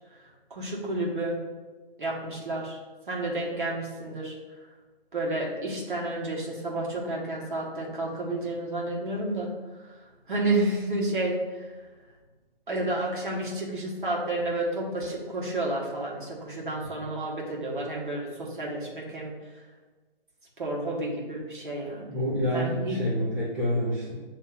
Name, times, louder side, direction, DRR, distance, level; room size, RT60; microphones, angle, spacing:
voice 1, 0.5-1.4 2.0-2.8 3.1-4.3 5.1-9.5 9.8-9.9 10.3-11.8 12.7-19.4 20.6-22.1 22.5-23.1, right 2 dB, 55° right, -3 dB, 1.3 m, -30 dB
voice 2, 22.1-24.2, equal, 15° right, -10 dB, 0.7 m, -27 dB
7.2 x 2.9 x 2.4 m, 1.3 s
figure-of-eight pair, 140°, 30 cm